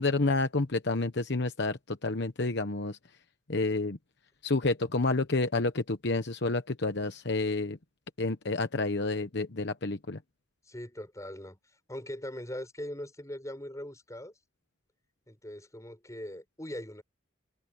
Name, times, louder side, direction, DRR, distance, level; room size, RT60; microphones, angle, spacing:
voice 1, 0.0-3.0 3.5-4.0 4.4-7.8 8.2-10.2, left 3 dB, 55° left, 1.1 m, -29 dB
voice 2, 10.6-11.6 11.9-14.3 15.3-17.0, left 1 dB, 15° left, 7.1 m, -41 dB
head